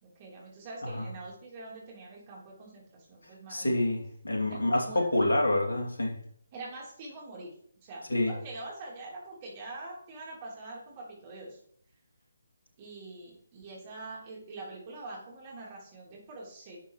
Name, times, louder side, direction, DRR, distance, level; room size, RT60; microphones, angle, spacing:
voice 1, 0.0-3.7 4.5-5.1 6.5-7.5 7.8-11.6 12.8-16.8, right 2 dB, 30° right, -3 dB, 3.6 m, -44 dB
voice 2, 3.5-6.2 8.1-8.4, left 1 dB, 65° left, 0 dB, 2.7 m, -27 dB
11.5 x 8.2 x 3.2 m, 0.63 s
figure-of-eight pair, 145°, 0 cm